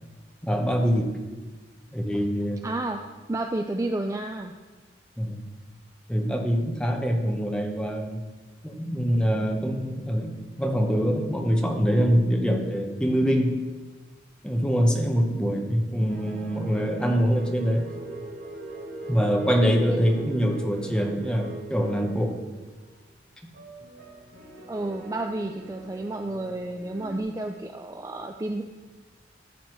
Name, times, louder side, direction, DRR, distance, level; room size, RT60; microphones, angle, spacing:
voice 1, 0.4-1.2 1.9-2.6 5.2-5.4 6.1-8.2 8.6-13.6 14.4-17.9 19.1-22.4, equal, 5° left, 2 dB, 0.9 m, -24 dB
voice 2, 2.6-3.0 3.3-4.5 19.9-20.0 24.7-28.6, right 2 dB, 15° right, 4 dB, 0.3 m, -31 dB
sound 1, 16.1-22.4 22.7-23.0 23.5-27.2, right 2 dB, 50° right, 1.4 m, -41 dB
13.5 x 7.6 x 3.1 m, 1.3 s
head